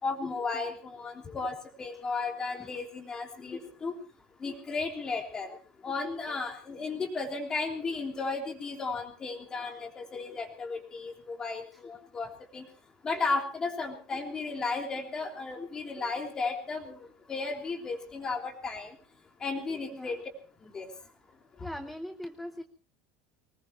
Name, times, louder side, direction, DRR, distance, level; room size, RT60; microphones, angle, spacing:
voice 1, 0.0-3.9 4.4-5.5 5.8-12.7 13.0-18.9 19.4-20.2 20.6-20.9 21.6-21.7, left 3 dB, 20° left, 3 dB, 3.3 m, -34 dB
voice 2, 19.8-20.2 20.9-21.1 21.6-22.6, equal, ahead, 8 dB, 0.7 m, -42 dB
24.5 x 19.5 x 3.1 m, 0.36 s
cardioid pair, 170°, 4 cm